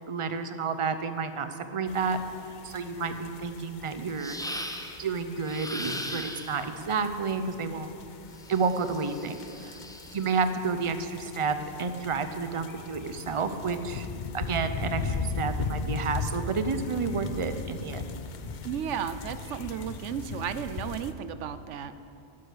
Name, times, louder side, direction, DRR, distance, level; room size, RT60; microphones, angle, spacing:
voice 1, 0.1-2.2 2.6-4.4 5.0-7.9 8.5-9.8 10.1-14.1 14.3-18.1, right 5 dB, 35° right, 9 dB, 0.6 m, -30 dB
sound 1, 1.9-21.1, left 4 dB, 50° left, 0.7 m, -38 dB
sound 2, 4.2-5.1 5.4-6.7 8.4-10.3, equal, 5° left, 0.6 m, -39 dB
voice 2, 18.6-21.9, right 9 dB, 90° right, 12 dB, 1.0 m, -34 dB
12.5 x 10.0 x 6.7 m, 2.6 s
omnidirectional pair, 1.2 m